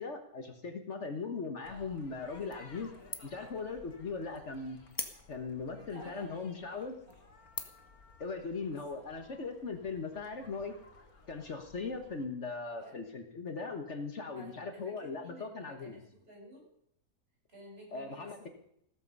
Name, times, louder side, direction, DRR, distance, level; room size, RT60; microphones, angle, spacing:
voice 1, 0.0-2.9 3.2-4.8 5.3-7.0 8.2-10.7 11.3-16.0 17.9-18.5, left 4 dB, 55° left, 6 dB, 1.6 m, -39 dB
sound 1, 1.6-12.3, left 3 dB, 85° left, 2.5 m, -58 dB
sound 2, 2.5-2.9 3.1-3.5 3.9-4.0 4.9-5.6 6.3-6.4 6.9-7.1 7.5-8.0, left 2 dB, 15° left, 1.2 m, -41 dB
voice 2, 5.7-6.3 6.7-6.8 8.7-8.8 12.8-13.0 14.3-14.9 15.2-16.7 17.5-18.5, right 1 dB, 40° right, -2 dB, 7.0 m, -52 dB
15.5 x 14.0 x 5.4 m, 0.74 s
omnidirectional pair, 1.5 m